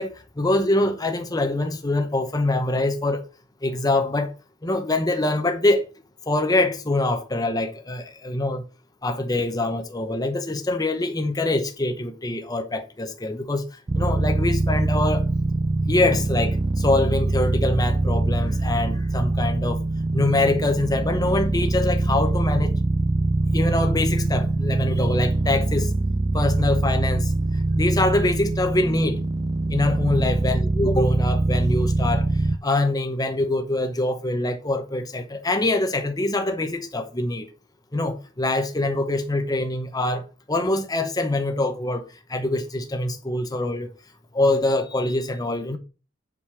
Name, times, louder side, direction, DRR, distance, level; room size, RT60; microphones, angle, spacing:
voice 1, 0.0-3.2 3.6-4.3 4.6-5.9 6.3-8.7 9.0-13.6 13.9-15.3 15.9-19.8 20.1-22.7 23.5-25.9 26.3-27.3 27.7-29.2 29.7-32.3 32.6-37.5 37.9-40.2 40.5-43.9 44.3-45.8, left 2 dB, 20° left, 0.8 m, -24 dB
sound 1, 13.9-32.6, right 2 dB, 25° right, 0.3 m, -23 dB
7.3 x 5.3 x 6.1 m
head